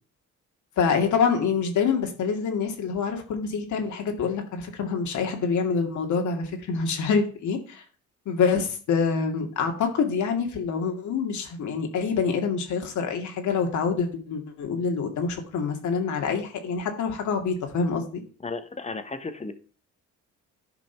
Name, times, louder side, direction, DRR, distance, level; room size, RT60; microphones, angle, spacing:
voice 1, 0.8-7.8 8.3-18.2, left 5 dB, 70° left, 4 dB, 2.3 m, -26 dB
voice 2, 18.4-19.5, left 3 dB, 20° left, 9 dB, 1.3 m, -34 dB
11.0 x 5.2 x 4.6 m, 0.40 s
cardioid pair, 90°, 30 cm